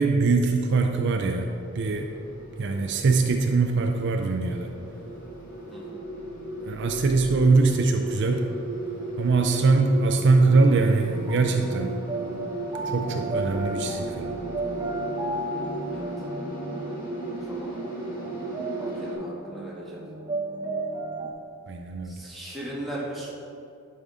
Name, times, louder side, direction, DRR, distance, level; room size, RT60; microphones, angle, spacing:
voice 1, 0.0-2.1 2.6-4.7 6.7-8.4 9.2-12.0 12.9-14.3 21.7-22.1, right 3 dB, 55° right, 4 dB, 0.4 m, -22 dB
sound 1, 1.4-19.1, right 1 dB, 40° left, 1.6 m, -36 dB
sound 2, 10.5-21.3, right 2 dB, 20° right, 0.7 m, -34 dB
voice 2, 17.4-17.7 18.8-20.0 22.0-23.3, right 1 dB, ahead, -7 dB, 1.7 m, -38 dB
11.0 x 5.5 x 3.7 m, 2.6 s
head